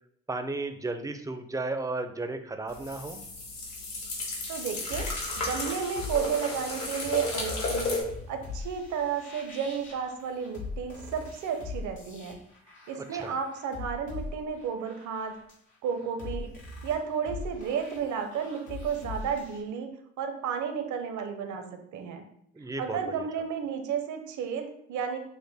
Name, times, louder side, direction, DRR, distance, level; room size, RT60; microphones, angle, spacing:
voice 1, 0.3-3.3 13.0-13.4 22.5-23.3, right 2 dB, 10° right, 7 dB, 0.4 m, -34 dB
sound 1, 2.7-8.0, left 2 dB, 65° left, 1.6 m, -33 dB
sound 2, 4.4-19.6, left 3 dB, 90° left, 1.5 m, -42 dB
voice 2, 4.5-5.1 5.4-8.0 8.3-12.4 12.9-15.4 15.8-16.5 16.8-19.9 20.2-21.7 21.9-22.2 22.8-25.2, right 7 dB, 75° right, 6 dB, 0.7 m, -32 dB
6.2 x 2.1 x 3.4 m, 0.73 s
cardioid pair, 90°, 30 cm